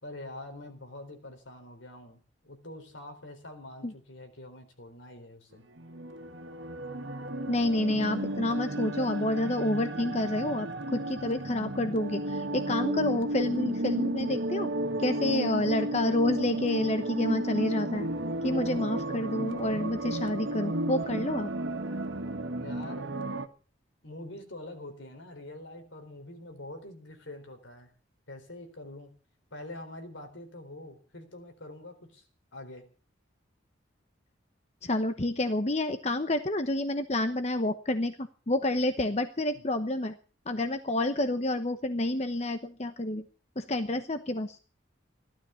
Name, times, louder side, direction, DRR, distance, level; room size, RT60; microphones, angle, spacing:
voice 1, 0.0-5.6 22.6-23.2 24.0-27.9 28.3-29.1 29.5-32.2 32.5-32.9 39.5-39.6, left 1 dB, 75° left, 6 dB, 4.1 m, -45 dB
sound 1, 5.8-23.5, right 1 dB, 75° right, 1.8 m, -33 dB
voice 2, 7.5-14.7 15.0-18.1 18.4-21.5 34.8-40.1 40.5-43.2 43.6-44.6, left 1 dB, 35° left, 9 dB, 0.9 m, -29 dB
16.0 x 12.5 x 7.0 m, 0.39 s
head